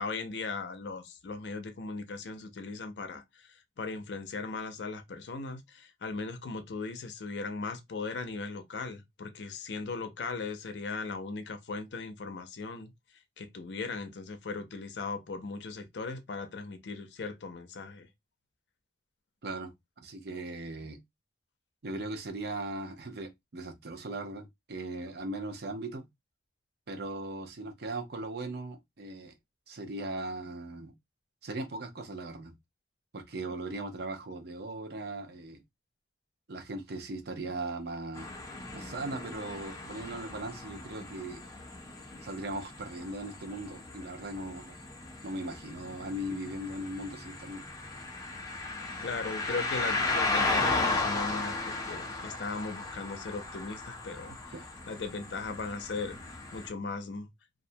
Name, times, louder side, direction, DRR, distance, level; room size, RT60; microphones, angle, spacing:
voice 1, 0.0-12.9 13.4-18.1 49.0-54.3 54.9-56.2 56.5-57.3, left 4 dB, 75° left, 0.5 m, -38 dB
voice 2, 19.4-19.7 20.0-21.0 21.8-26.1 26.9-29.3 29.7-30.9 31.4-32.5 33.1-35.6 36.5-38.3 38.7-41.4 42.2-44.8 45.2-47.6 54.5-54.7, right 2 dB, 65° right, 0.7 m, -38 dB
sound 1, 38.1-56.7, left 3 dB, 20° left, 0.6 m, -36 dB
2.4 x 2.1 x 2.6 m
head